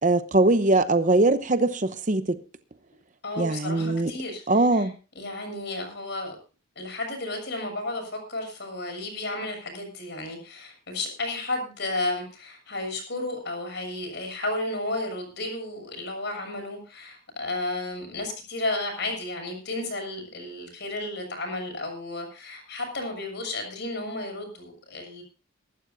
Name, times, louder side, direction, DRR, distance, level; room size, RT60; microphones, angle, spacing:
voice 1, 0.0-2.4 3.4-4.1 4.5-5.0, right 2 dB, 35° right, 0.8 m, -21 dB
voice 2, 3.2-4.4 4.7-4.9 5.2-6.4 6.8-25.2, left 2 dB, 50° left, 7.1 m, -33 dB
23.5 x 12.0 x 2.7 m
head